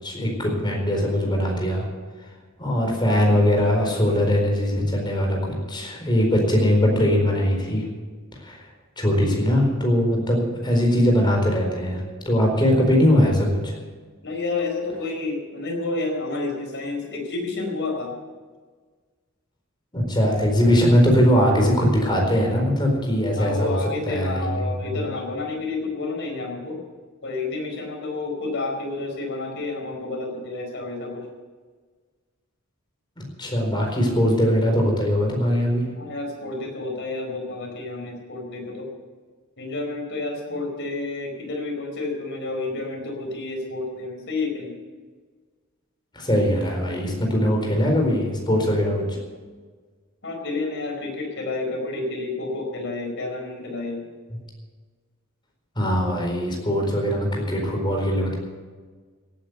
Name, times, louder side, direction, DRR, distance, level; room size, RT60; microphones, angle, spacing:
voice 1, 0.0-1.9 2.6-7.9 8.4-8.6 9.0-13.8 19.9-23.8 24.0-25.0 33.2-35.8 46.1-49.2 55.8-58.3, equal, 20° left, 0 dB, 4.4 m, -21 dB
voice 2, 14.2-18.2 23.4-26.8 27.2-31.3 36.0-38.9 39.6-44.7 49.0-49.2 50.2-54.1, left 3 dB, 60° left, 2 dB, 4.6 m, -30 dB
17.0 x 9.8 x 6.8 m, 1.5 s
head